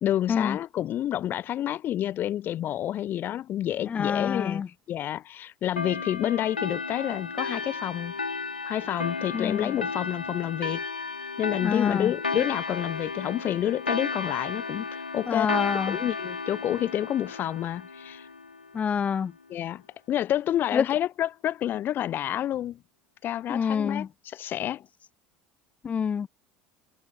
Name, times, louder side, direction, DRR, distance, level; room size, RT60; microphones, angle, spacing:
voice 1, 0.0-4.6 4.9-8.1 8.7-10.8 11.4-18.3 19.5-19.8 20.1-22.8 23.2-24.9, left 12 dB, 45° left, 1.0 m, -29 dB
voice 2, 3.9-4.7 9.3-9.7 11.6-12.1 15.3-16.0 18.7-19.3 20.7-20.9 23.5-24.1 25.8-26.3, left 7 dB, 30° left, 0.5 m, -26 dB
sound 1, 5.8-18.8, left 4 dB, 90° left, 1.6 m, -34 dB
figure-of-eight pair, 70°, 5 cm